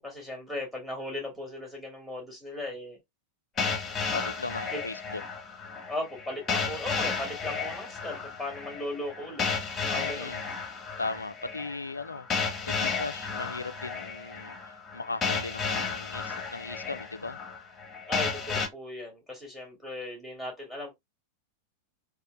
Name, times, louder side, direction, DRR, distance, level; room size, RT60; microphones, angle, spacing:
voice 1, 0.0-3.0 5.9-10.3 18.1-20.9, left 1 dB, 5° right, 2.1 m, -37 dB
sound 1, 3.6-18.7, left 5 dB, 20° left, 1.0 m, -33 dB
voice 2, 4.1-5.2 9.9-10.5 11.0-17.4, left 3 dB, 80° left, 0.3 m, -38 dB
4.3 x 2.4 x 2.3 m
figure-of-eight pair, 90°, 0 cm